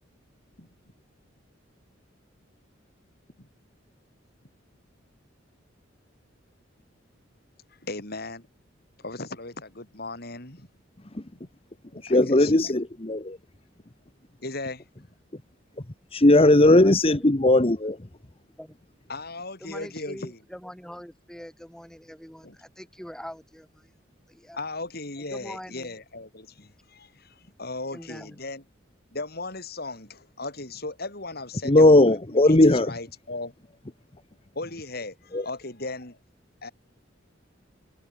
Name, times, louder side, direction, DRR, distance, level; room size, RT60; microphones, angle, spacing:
voice 1, 7.7-8.5 9.0-10.7 11.9-12.8 14.4-14.9 19.1-20.4 22.4-22.6 24.5-28.6 29.1-33.5 34.5-36.2 36.6-36.7, left 2 dB, 55° left, 5.8 m, -37 dB
voice 2, 12.0-13.4 16.1-18.0 31.7-32.9 35.3-35.4, left 2 dB, 30° left, 1.3 m, -18 dB
voice 3, 16.7-17.3 18.6-18.7 19.6-24.0 24.3-24.6 25.3-25.9 27.9-28.4, equal, 5° left, 7.8 m, -43 dB
head